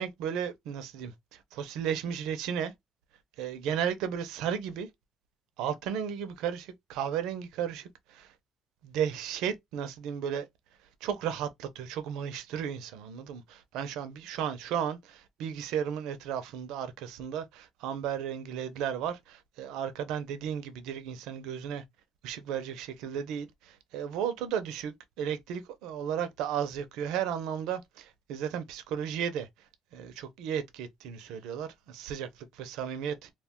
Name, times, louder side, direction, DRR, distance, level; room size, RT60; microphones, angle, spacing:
voice 1, 0.0-2.7 3.4-4.9 5.6-8.3 8.8-10.5 11.0-21.8 22.2-29.5 29.9-33.3, right 8 dB, 80° right, 0.5 m, -34 dB
2.3 x 2.2 x 3.5 m
supercardioid pair, 80°, 0 cm